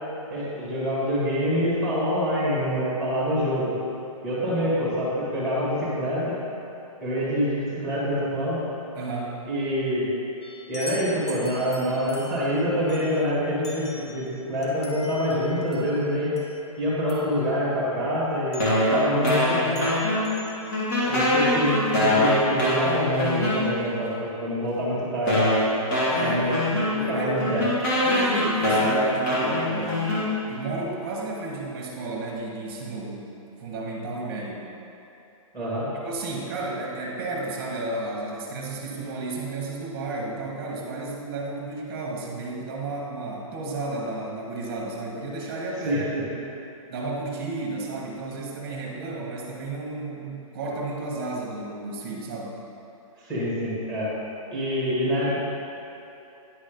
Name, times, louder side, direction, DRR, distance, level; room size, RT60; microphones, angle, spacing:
voice 1, 0.3-3.7 4.2-6.4 7.0-8.6 9.5-10.1 10.7-16.4 16.8-19.8 21.0-25.4 26.2-26.6 26.9-27.7 35.5-35.9 45.8-46.3 53.2-54.1 54.5-55.4, equal, ahead, -9 dB, 1.9 m, -26 dB
voice 2, 8.9-9.4 26.1-26.5 27.0-27.3 28.0-30.2 30.5-34.6 36.0-46.2 46.9-52.6, right 2 dB, 25° right, -3 dB, 1.3 m, -33 dB
sound 1, 10.4-17.4 18.5-18.9 19.3-19.5 19.7-20.9, left 1 dB, 50° left, 1.3 m, -43 dB
sound 2, 18.6-20.4 20.7-24.0 24.7-24.8 25.3-30.7, left 1 dB, 30° left, 1.8 m, -23 dB
10.0 x 4.1 x 5.2 m, 2.8 s
hypercardioid pair, 170°, 18 cm